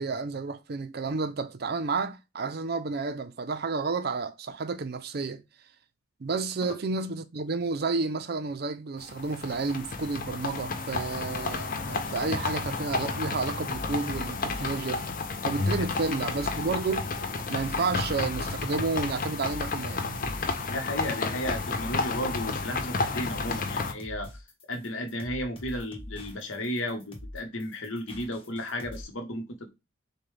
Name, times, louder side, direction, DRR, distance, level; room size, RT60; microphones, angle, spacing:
voice 1, 0.0-5.4 6.2-15.1 15.4-17.1 17.5-20.1, right 4 dB, 50° right, 0.5 m, -31 dB
sound 1, 9.0-23.9, left 4 dB, 45° left, 0.5 m, -31 dB
sound 2, 13.7-29.0, left 1 dB, 25° left, 1.0 m, -43 dB
voice 2, 20.7-24.3 24.7-29.7, left 1 dB, 80° left, 1.1 m, -34 dB
6.7 x 2.3 x 3.3 m
head